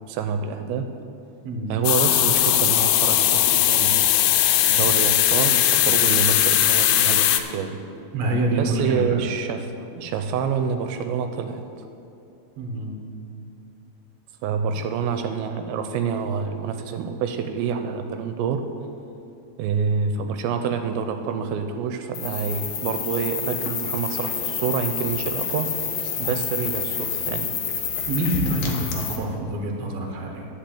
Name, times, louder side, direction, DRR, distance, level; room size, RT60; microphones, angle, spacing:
voice 1, 0.1-0.9 1.7-4.0 4.7-7.8 8.6-11.9 14.4-18.6 19.6-25.7 26.2-27.5, right 6 dB, 85° right, 7 dB, 2.4 m, -27 dB
sound 1, 1.8-7.4, left 13 dB, 90° left, 2.5 m, -19 dB
voice 2, 8.1-9.2 12.6-13.0 26.2-26.4 28.1-30.5, right 1 dB, 55° right, 1 dB, 1.9 m, -26 dB
sound 2, 22.1-29.2, left 6 dB, 65° left, 1.7 m, -28 dB
10.5 x 5.6 x 8.5 m, 2.7 s
omnidirectional pair, 4.3 m